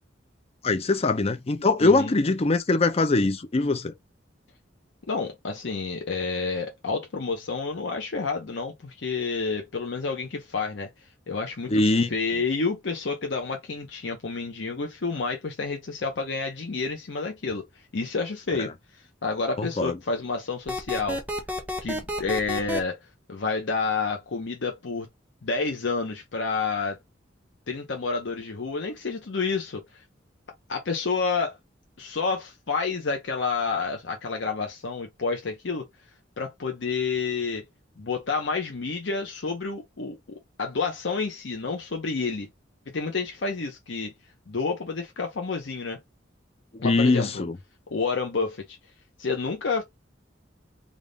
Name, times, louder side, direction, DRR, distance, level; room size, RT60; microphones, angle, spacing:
voice 1, 0.6-3.9 11.7-12.1 19.6-20.0 46.7-47.5, left 3 dB, 30° left, 0.5 m, -22 dB
voice 2, 1.8-2.1 5.1-10.9 11.3-17.6 17.9-21.2 21.8-23.0 23.3-25.1 25.4-27.0 27.7-30.0 30.7-31.6 32.0-35.8 36.4-37.7 38.0-40.2 40.6-42.5 42.9-44.1 44.5-46.0 46.8-47.4 47.9-48.8 49.2-49.8, left 4 dB, 70° left, 0.7 m, -29 dB
sound 1, 20.7-22.8, left 1 dB, 10° right, 0.8 m, -30 dB
3.5 x 2.5 x 3.9 m
head